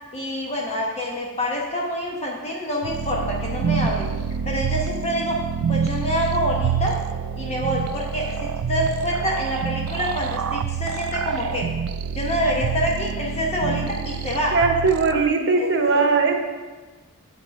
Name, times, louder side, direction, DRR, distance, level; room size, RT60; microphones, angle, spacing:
voice 1, 0.1-4.1 4.4-5.4 5.7-7.0 7.4-11.7 12.1-14.6 15.6-16.1, equal, 30° left, -2 dB, 1.0 m, -26 dB
sound 1, 2.8-15.3, right 7 dB, 90° right, 0.4 m, -27 dB
voice 2, 14.5-16.4, right 4 dB, 55° right, 4 dB, 1.1 m, -19 dB
8.0 x 5.9 x 5.2 m, 1.3 s
head